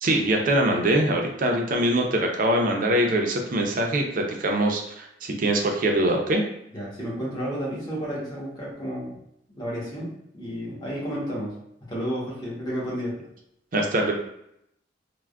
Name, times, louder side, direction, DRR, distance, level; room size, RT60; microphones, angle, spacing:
voice 1, 0.0-6.4 13.7-14.1, right 1 dB, 50° right, 2 dB, 0.5 m, -23 dB
voice 2, 6.7-9.2 9.6-11.5 11.8-13.2, equal, 25° left, -6 dB, 1.0 m, -31 dB
3.3 x 2.1 x 2.3 m, 0.77 s
head